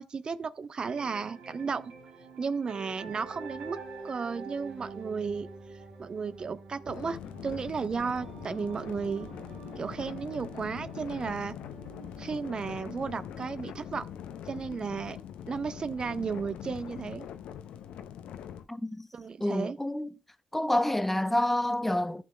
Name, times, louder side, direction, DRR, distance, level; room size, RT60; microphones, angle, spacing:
voice 1, 0.0-1.9 2.4-3.8 4.0-9.3 9.8-11.6 12.2-14.0 14.5-15.2 15.5-17.3 19.1-19.8, right 5 dB, 45° right, 0.5 m, -34 dB
sound 1, 0.8-14.8, right 4 dB, 75° right, 2.8 m, -47 dB
sound 2, 6.9-18.7, left 9 dB, 70° left, 0.6 m, -43 dB
voice 2, 18.7-19.1 19.4-20.1 20.5-22.2, left 1 dB, 10° left, 0.8 m, -28 dB
14.0 x 6.2 x 2.3 m
hypercardioid pair, 40°, 2 cm